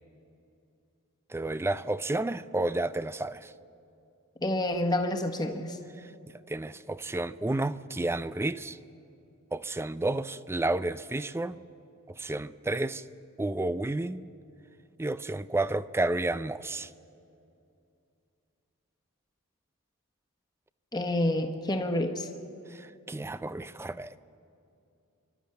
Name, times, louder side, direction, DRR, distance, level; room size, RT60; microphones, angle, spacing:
voice 1, 1.3-3.5 6.5-8.8 9.5-11.6 12.1-13.0 13.4-14.2 15.0-16.9 22.7-24.1, right 2 dB, 10° right, 0.4 m, -31 dB
voice 2, 4.4-5.8 20.9-22.3, left 1 dB, 20° left, 1.4 m, -28 dB
26.5 x 12.5 x 9.0 m
head